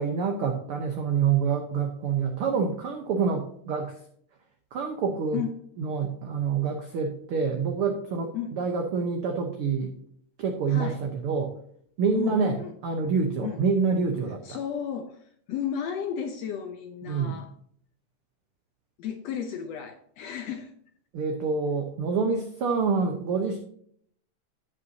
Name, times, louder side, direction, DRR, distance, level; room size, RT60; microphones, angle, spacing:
voice 1, 0.0-3.9 4.7-5.4 5.8-9.9 10.4-11.5 12.0-12.6 12.8-14.6 17.1-17.4 21.1-23.6, right 5 dB, 65° right, 3 dB, 1.4 m, -27 dB
voice 2, 10.7-11.0 12.1-12.7 13.4-13.6 14.4-17.5 19.0-20.7, left 8 dB, 75° left, 6 dB, 1.6 m, -33 dB
16.0 x 5.5 x 2.7 m, 0.64 s
omnidirectional pair, 3.6 m